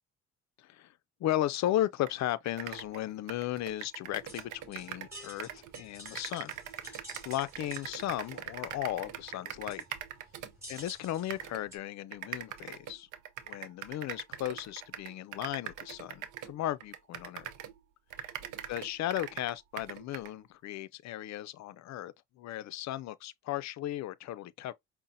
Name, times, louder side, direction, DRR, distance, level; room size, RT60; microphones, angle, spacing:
voice 1, 0.6-0.9 1.2-6.6 6.8-7.0 7.2-9.8 10.7-13.1 13.5-17.5 18.7-24.7, left 13 dB, 65° left, 0.5 m, -35 dB
sound 1, 2.1-2.2 2.4-5.1 5.4-10.9 11.3-11.6 12.1-17.8 18.1-20.3, right 10 dB, 80° right, 0.6 m, -42 dB
sound 2, 4.0-11.8, equal, 10° right, 2.6 m, -51 dB
5.5 x 2.1 x 2.5 m
cardioid pair, 90°, 30 cm